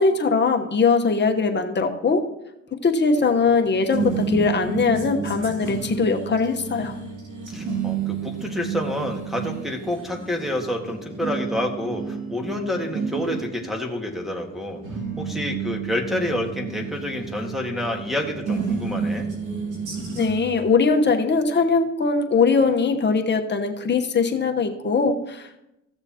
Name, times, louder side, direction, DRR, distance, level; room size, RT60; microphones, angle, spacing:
voice 1, 0.0-2.2 2.8-6.9 20.2-25.6, left 4 dB, 35° left, 4 dB, 1.1 m, -21 dB
sound 1, 3.1-20.6, right 5 dB, 80° right, 2.6 m, -31 dB
voice 2, 7.5-14.8 15.2-19.3, left 1 dB, ahead, -1 dB, 1.6 m, -28 dB
15.5 x 6.8 x 2.9 m, 0.88 s
cardioid pair, 90°, 30 cm